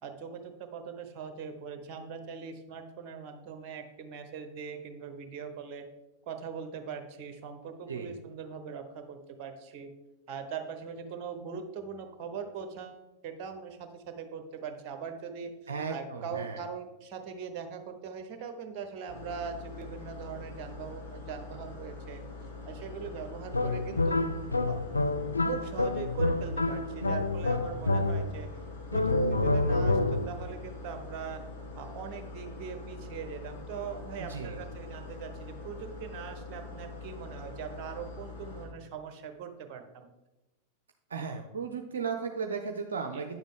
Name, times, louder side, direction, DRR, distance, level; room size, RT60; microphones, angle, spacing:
voice 1, 0.0-5.9 6.3-9.9 10.3-15.5 15.9-22.2 22.7-24.3 24.7-24.8 25.4-28.5 28.9-31.4 31.8-40.1 43.1-43.3, right 6 dB, 40° right, 7 dB, 1.0 m, -41 dB
voice 2, 15.7-16.6 34.3-34.6 41.1-43.4, right 5 dB, 70° right, 5 dB, 0.6 m, -35 dB
sound 1, 19.1-38.7, left 3 dB, 60° left, 2.0 m, -44 dB
sound 2, 23.5-28.5 28.9-30.4, left 2 dB, 80° left, 0.4 m, -28 dB
9.5 x 7.1 x 3.8 m, 1.0 s
figure-of-eight pair, 90°, 0 cm